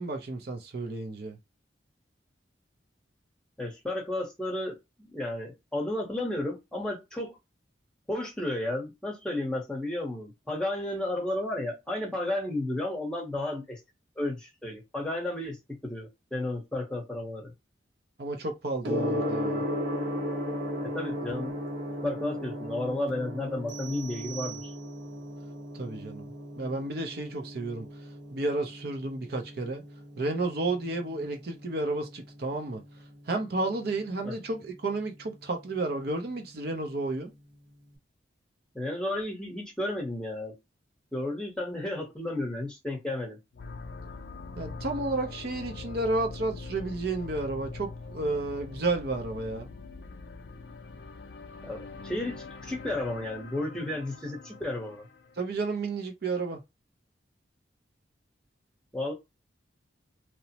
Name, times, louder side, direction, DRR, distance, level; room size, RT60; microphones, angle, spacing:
voice 1, 0.0-1.4 18.2-19.6 25.8-26.3 26.6-27.9 28.3-29.8 30.2-32.8 33.3-37.3 44.6-49.7 55.4-56.6, right 2 dB, 55° right, 0.5 m, -31 dB
voice 2, 3.6-7.4 8.1-13.8 14.2-15.6 15.8-17.5 20.8-21.5 22.0-24.7 34.2-34.3 38.7-40.5 41.1-43.4 51.6-55.0 58.9-59.1, left 1 dB, 5° left, 0.8 m, -33 dB
Gong, 18.8-37.9, equal, 70° right, 0.8 m, -37 dB
sound 1, 23.7-25.2, right 12 dB, 25° right, 0.9 m, -44 dB
sound 2, 43.5-55.5, left 3 dB, 60° left, 0.4 m, -43 dB
2.9 x 2.0 x 2.8 m
head